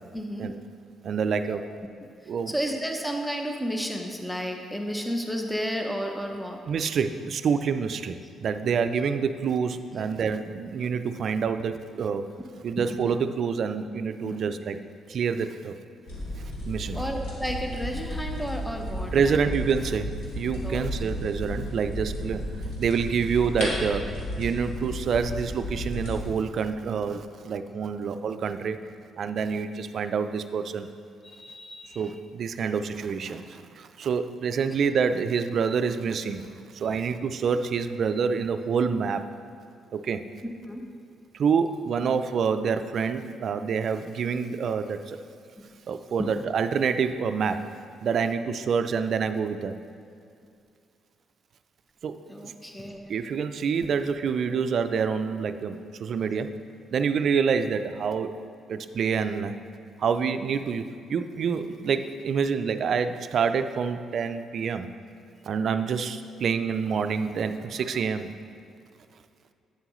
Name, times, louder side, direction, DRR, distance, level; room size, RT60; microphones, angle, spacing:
voice 1, 0.1-0.5 2.5-6.6 12.8-12.9 14.2-14.4 16.9-19.4 20.6-20.8 31.2-32.1 40.4-40.8 45.6-45.7 46.2-46.3 52.3-53.1, equal, 5° left, 3 dB, 0.7 m, -32 dB
voice 2, 1.0-1.6 2.3-2.5 6.7-12.3 12.6-14.8 15.1-15.8 16.4-17.0 19.1-22.5 22.8-24.0 24.4-28.8 29.2-30.9 32.0-36.5 36.7-39.2 39.9-40.2 41.3-45.2 45.9-47.6 48.0-49.7 52.0-52.2 52.4-52.5 53.1-56.5 56.9-58.3 58.7-59.5 60.0-64.9 65.5-68.3, right 6 dB, 60° right, 10 dB, 0.4 m, -27 dB
sound 1, 16.1-26.3, equal, 85° left, 2.0 m, -33 dB
8.6 x 7.5 x 3.1 m, 2.4 s
cardioid pair, 90°, 0 cm